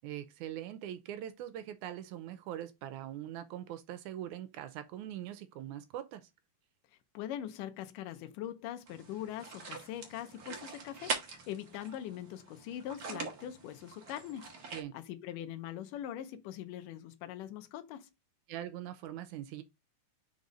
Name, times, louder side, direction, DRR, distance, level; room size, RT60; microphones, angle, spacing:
voice 1, 0.0-6.3 14.7-14.9 18.5-19.6, right 11 dB, 80° right, 2.0 m, -42 dB
voice 2, 7.1-18.1, left 11 dB, 90° left, 2.3 m, -42 dB
sound 1, 8.9-14.8, right 5 dB, 55° right, 1.0 m, -43 dB
5.3 x 4.0 x 5.1 m
omnidirectional pair, 3.7 m